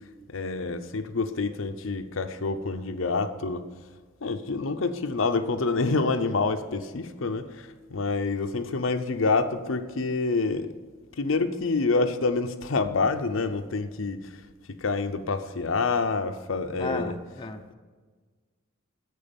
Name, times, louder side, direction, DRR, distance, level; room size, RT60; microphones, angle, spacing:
voice 1, 0.3-3.6 4.2-10.7 11.2-14.3 14.7-17.2, left 3 dB, 75° left, 0.7 m, -27 dB
voice 2, 16.8-17.6, left 2 dB, 25° left, 0.7 m, -34 dB
11.0 x 8.3 x 5.3 m
head